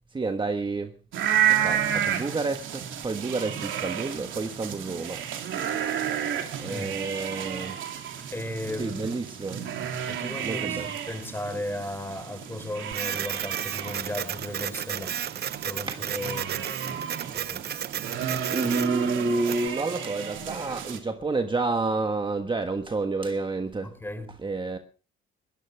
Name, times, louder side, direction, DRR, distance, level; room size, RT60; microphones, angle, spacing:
voice 1, 0.1-0.9 1.5-5.2 6.6-7.8 8.8-9.6 10.4-10.9 15.9-16.1 18.5-23.9 24.4-24.8, right 3 dB, 25° right, 1.4 m, -29 dB
sound 1, 1.1-21.0, right 9 dB, 75° right, 3.0 m, -32 dB
voice 2, 6.7-7.0 8.3-9.1 10.0-15.2 15.7-16.7 17.3-17.7 24.0-24.3, left 1 dB, 10° left, 4.1 m, -36 dB
Printer, 12.9-19.7, right 10 dB, 55° right, 0.7 m, -33 dB
21.0 x 17.5 x 3.5 m
cardioid pair, 90°, 20 cm